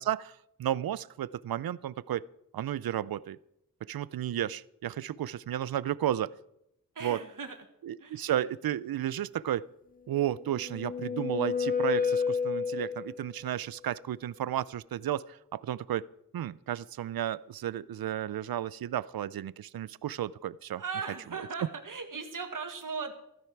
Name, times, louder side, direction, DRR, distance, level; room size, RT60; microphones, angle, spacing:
voice 1, 0.0-2.2 2.5-3.4 3.8-6.3 7.0-7.2 7.8-9.6 10.1-16.0 16.3-20.8, right 11 dB, 80° right, 19 dB, 0.5 m, -33 dB
voice 2, 6.9-7.6 8.0-8.3 20.8-23.1, right 5 dB, 60° right, 5 dB, 1.7 m, -38 dB
sound 1, 10.2-13.3, left 6 dB, 25° left, 0.6 m, -30 dB
15.0 x 12.5 x 4.6 m, 0.80 s
cardioid pair, 55°, 35 cm